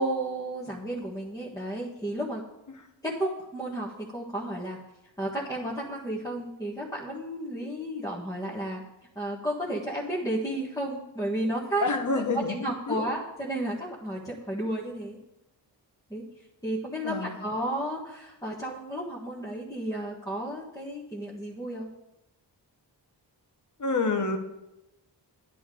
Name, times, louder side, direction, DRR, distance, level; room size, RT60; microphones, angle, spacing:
voice 1, 0.0-2.4 3.0-4.8 5.2-8.8 9.1-11.8 12.5-15.2 16.1-16.2 16.6-21.9, right 1 dB, 10° left, -6 dB, 1.6 m, -32 dB
voice 2, 11.8-12.5 12.9-13.0 17.0-17.4 23.8-24.4, left 3 dB, 45° left, 4 dB, 1.5 m, -27 dB
12.0 x 10.5 x 3.9 m, 0.92 s
wide cardioid pair, 140°, 42 cm